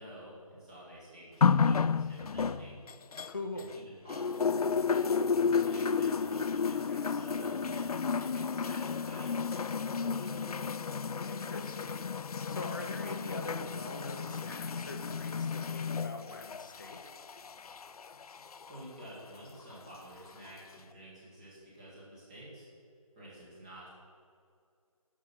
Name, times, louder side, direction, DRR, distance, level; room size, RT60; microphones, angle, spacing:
voice 1, 0.0-2.8 3.5-10.6 18.6-22.7 23.1-23.9, equal, 10° right, -8 dB, 1.7 m, -50 dB
sound 1, 1.4-3.8 4.1-18.8 19.7-19.8, left 5 dB, 85° left, 0.4 m, -32 dB
voice 2, 3.3-3.8 11.2-12.1 12.5-17.0, left 2 dB, 35° left, 5 dB, 0.9 m, -42 dB
12.5 x 6.0 x 5.9 m, 2.3 s
figure-of-eight pair, 170°, 19 cm